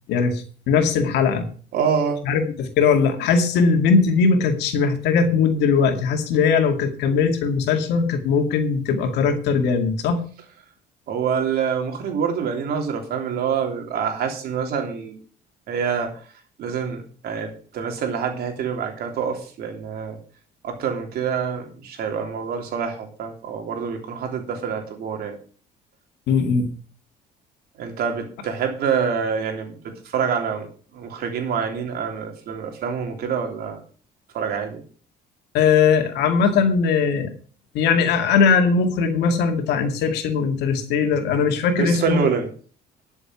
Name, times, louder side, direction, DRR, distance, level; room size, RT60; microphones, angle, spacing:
voice 1, 0.1-1.4 2.2-10.2 26.3-26.7 35.5-37.3 37.7-42.3, left 5 dB, 80° left, 5 dB, 2.3 m, -20 dB
voice 2, 1.7-2.2 11.1-15.2 15.7-16.2 16.6-20.2 20.6-25.4 27.8-30.7 30.9-33.8 34.3-34.8 41.8-42.5, right 6 dB, 65° right, 3 dB, 3.3 m, -26 dB
12.0 x 7.1 x 6.2 m, 0.41 s
cardioid pair, 110°, 17 cm